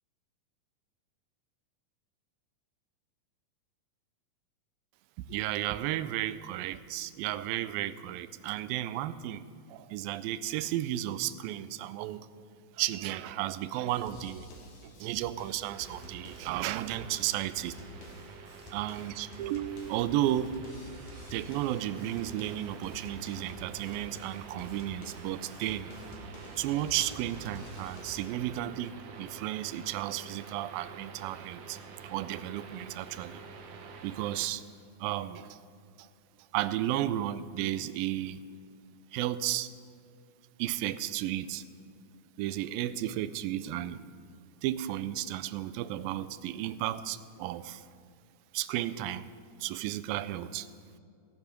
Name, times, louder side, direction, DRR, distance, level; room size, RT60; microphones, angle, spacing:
voice 1, 5.3-9.4 9.7-12.3 12.8-14.5 15.0-17.8 18.7-20.6 21.3-25.9 26.6-31.8 32.1-33.4 34.0-34.6 35.0-35.6 36.0-36.1 36.5-38.4 39.1-39.7 40.6-41.6 42.4-44.1 44.6-47.8 48.5-49.3 49.6-50.7, right 13 dB, 90° right, 15 dB, 2.3 m, -33 dB
sound 1, 13.9-28.2, left 1 dB, 70° left, 3.2 m, -49 dB
sound 2, 15.7-34.5, right 5 dB, 70° right, 2.2 m, -48 dB
17.5 x 9.8 x 5.2 m, 2.4 s
omnidirectional pair, 4.0 m